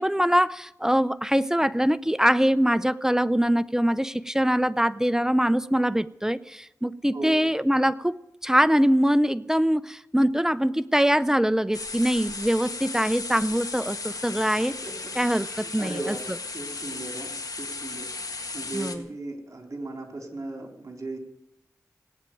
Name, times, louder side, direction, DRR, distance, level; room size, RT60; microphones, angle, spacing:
voice 1, 0.0-8.2 8.4-14.8 15.2-16.1 18.7-19.0, equal, 10° right, 15 dB, 0.5 m, -23 dB
sound 1, 11.7-19.0, left 3 dB, 65° left, 1.8 m, -35 dB
voice 2, 14.2-14.5 14.8-14.9 15.5-16.2 16.5-17.3 17.6-18.1 18.5-21.2, right 2 dB, 50° right, 4 dB, 3.7 m, -37 dB
17.5 x 8.9 x 9.2 m, 0.84 s
wide cardioid pair, 75°, 7 cm